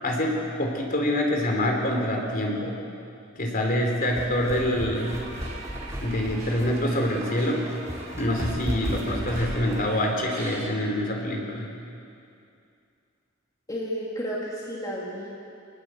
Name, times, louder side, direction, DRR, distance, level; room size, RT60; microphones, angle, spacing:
voice 1, 0.0-2.8 3.4-5.2 6.0-7.7 8.2-11.7, left 1 dB, 45° left, 1 dB, 4.0 m, -26 dB
sound 1, 3.8-9.9, equal, 15° right, 3.0 m, -35 dB
sound 2, 4.9-10.7, right 3 dB, 45° right, 3.7 m, -42 dB
voice 2, 13.7-15.3, equal, 15° left, -4 dB, 2.5 m, -32 dB
25.0 x 19.5 x 8.0 m, 2.5 s
head